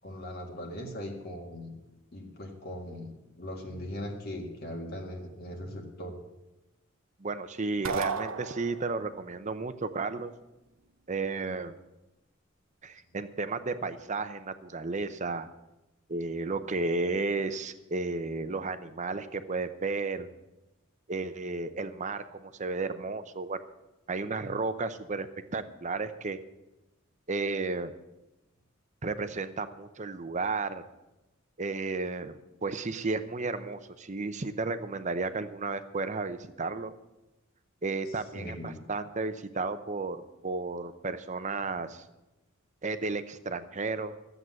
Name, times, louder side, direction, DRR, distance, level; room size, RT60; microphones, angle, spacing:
voice 1, 0.0-1.8 2.1-3.1 3.4-6.2 38.1-38.8, left 1 dB, 50° left, 0 dB, 1.8 m, -39 dB
voice 2, 7.2-10.3 11.1-11.8 12.8-15.5 16.1-20.3 21.1-23.6 24.1-25.3 25.5-26.4 27.3-27.9 29.0-30.8 31.6-36.9 37.8-42.0 42.8-44.2, right 3 dB, 35° right, 11 dB, 0.7 m, -33 dB
sound 1, 7.8-9.1, right 5 dB, 65° right, 0.8 m, -33 dB
13.5 x 7.9 x 7.5 m, 0.99 s
head